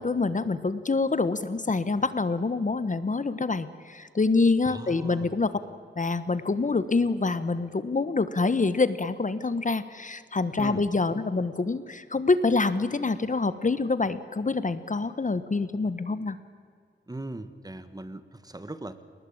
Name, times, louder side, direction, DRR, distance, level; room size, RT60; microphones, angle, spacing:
voice 1, 0.0-5.6 6.0-16.4, left 3 dB, 40° left, 13 dB, 1.2 m, -26 dB
voice 2, 4.6-5.3 10.6-10.8 17.1-19.0, right 2 dB, 20° right, 11 dB, 1.7 m, -39 dB
29.5 x 19.5 x 8.8 m, 2.2 s
wide cardioid pair, 75°, 20 cm